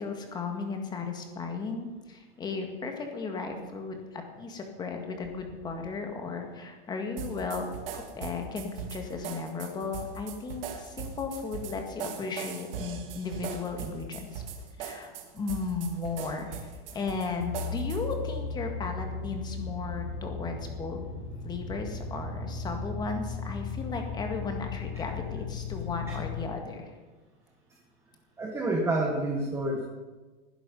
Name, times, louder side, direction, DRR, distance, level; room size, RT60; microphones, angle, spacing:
voice 1, 0.0-14.4 14.8-21.1 21.4-27.0, left 4 dB, 15° left, 4 dB, 1.8 m, -35 dB
sound 1, 7.2-18.2, right 7 dB, 65° right, 2.8 m, -40 dB
sound 2, 17.4-26.5, left 4 dB, 45° left, 2.3 m, -36 dB
voice 2, 28.4-29.9, right 2 dB, 10° right, -1 dB, 1.5 m, -28 dB
19.5 x 10.5 x 5.4 m, 1.3 s
supercardioid pair, 165°, 30 cm